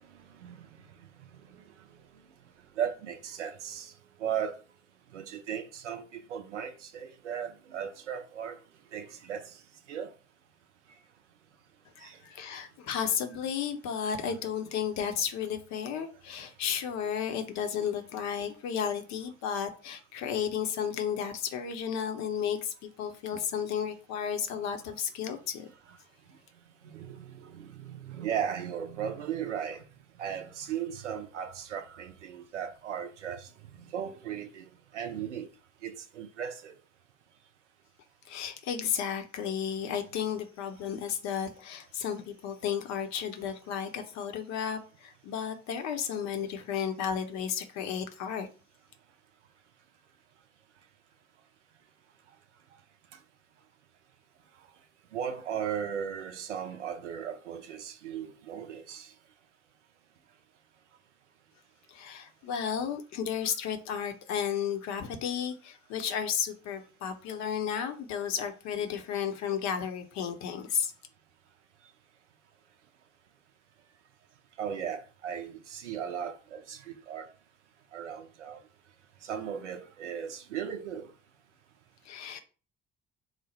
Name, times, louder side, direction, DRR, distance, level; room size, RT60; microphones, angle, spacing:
voice 1, 2.8-3.9 4.2-4.5 5.1-8.6 8.9-9.4 9.9-10.1 12.0-12.1 27.1-27.2 27.6-29.8 30.2-33.4 33.9-34.6 34.9-35.5 35.8-36.7 55.1-59.1 74.6-77.3 77.9-78.6 79.3-81.1, right 8 dB, 80° right, 0.5 m, -36 dB
voice 2, 12.0-25.7 38.3-48.5 61.9-70.9 82.0-82.4, left 8 dB, 50° left, 0.6 m, -33 dB
3.1 x 2.0 x 3.9 m
figure-of-eight pair, 50°, 35 cm